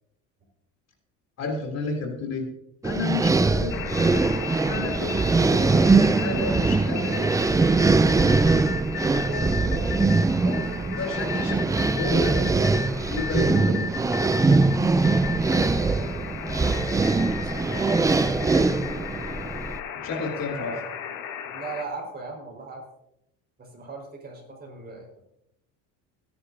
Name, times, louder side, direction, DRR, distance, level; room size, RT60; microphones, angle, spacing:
voice 1, 1.4-2.5 2.8-3.9 4.7-5.8 6.2-7.3 11.0-11.5 11.9-12.4 13.1-13.9 19.9-20.8, left 3 dB, 45° left, 1 dB, 3.3 m, -31 dB
sound 1, 2.8-19.8, right 3 dB, 10° right, 0.4 m, -22 dB
sound 2, 3.7-21.8, left 8 dB, 65° left, 1.7 m, -36 dB
voice 2, 9.2-10.1 10.4-11.1 12.0-12.9 15.2-16.1 17.4-18.8 20.4-20.7 21.5-22.8 23.6-25.2, right 3 dB, 25° right, 0 dB, 5.0 m, -39 dB
20.0 x 10.0 x 2.8 m, 0.79 s
cardioid pair, 125°, 36 cm